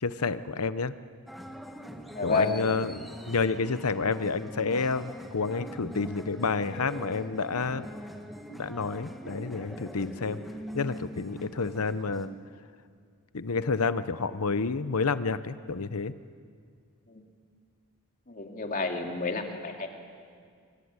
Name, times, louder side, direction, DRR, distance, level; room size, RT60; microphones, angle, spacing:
voice 1, 0.0-0.9 2.2-7.9 8.5-10.4 10.7-12.3 13.3-16.1, left 4 dB, 80° left, 13 dB, 0.9 m, -29 dB
sound 1, 1.3-12.3, equal, ahead, 1.8 m, -42 dB
voice 2, 2.1-2.6 17.1-17.2 18.3-19.9, left 3 dB, 40° left, 3 dB, 2.7 m, -30 dB
24.5 x 24.0 x 9.7 m, 2.2 s
head